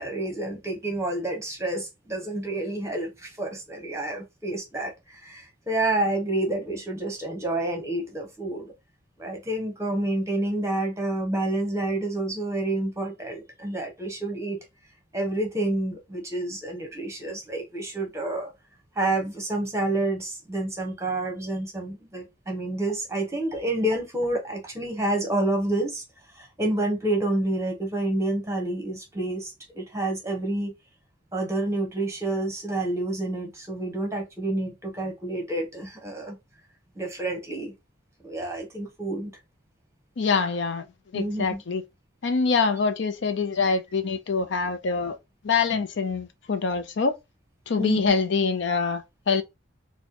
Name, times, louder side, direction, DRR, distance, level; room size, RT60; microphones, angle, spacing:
voice 1, 0.0-8.7 9.2-14.6 15.1-18.5 18.9-26.0 26.3-30.7 31.3-36.4 36.9-37.7 38.2-39.3 41.1-41.6 47.8-48.0, right 2 dB, 15° right, 1.0 m, -29 dB
voice 2, 40.2-40.8 41.1-41.8 42.2-45.2 45.4-47.1 47.7-49.4, left 4 dB, 65° left, 0.5 m, -25 dB
4.1 x 2.1 x 2.9 m
head